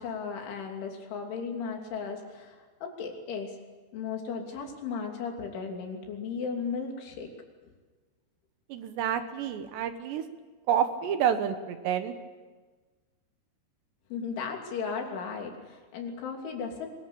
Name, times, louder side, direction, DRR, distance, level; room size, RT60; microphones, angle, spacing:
voice 1, 0.0-3.6 3.9-7.3 14.1-16.9, left 5 dB, 80° left, 2 dB, 5.4 m, -35 dB
voice 2, 8.7-10.2 10.7-12.1, right 9 dB, 70° right, 9 dB, 3.2 m, -28 dB
23.5 x 21.0 x 8.7 m, 1.4 s
omnidirectional pair, 5.4 m